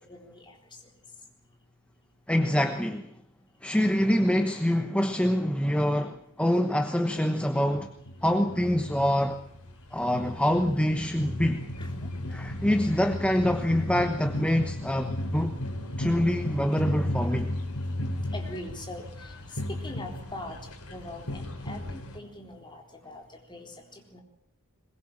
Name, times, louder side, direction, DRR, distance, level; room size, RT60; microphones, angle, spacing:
voice 1, 0.1-0.6 11.8-11.9 18.3-20.6 20.9-23.2 23.5-24.2, left 2 dB, 20° left, 2 dB, 4.0 m, -42 dB
voice 2, 2.3-3.2 3.6-7.9 8.2-9.4 9.9-11.7 12.3-15.6 16.0-17.5, equal, 5° left, 7 dB, 1.1 m, -25 dB
sound 1, 7.6-22.2, left 1 dB, 75° left, 4.1 m, -35 dB
22.0 x 21.5 x 7.5 m, 0.71 s
head